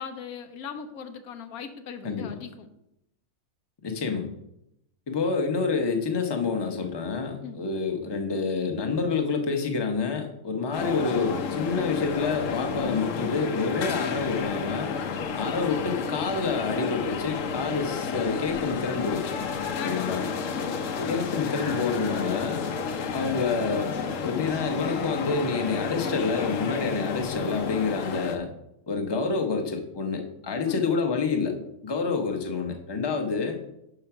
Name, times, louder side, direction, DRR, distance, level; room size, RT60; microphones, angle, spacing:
voice 1, 0.0-2.7 7.4-7.6 19.7-20.2 20.9-21.2 30.7-30.9, left 6 dB, 85° left, 8 dB, 1.2 m, -38 dB
voice 2, 3.8-4.3 5.1-14.9 15.3-19.4 19.8-20.3 21.0-22.6 23.1-23.9 24.2-28.5 28.9-31.6 31.8-33.6, left 4 dB, 25° left, 4 dB, 0.6 m, -28 dB
sound 1, 10.7-28.4, left 5 dB, 65° left, 1.0 m, -31 dB
5.8 x 5.1 x 5.8 m, 0.81 s
omnidirectional pair, 1.5 m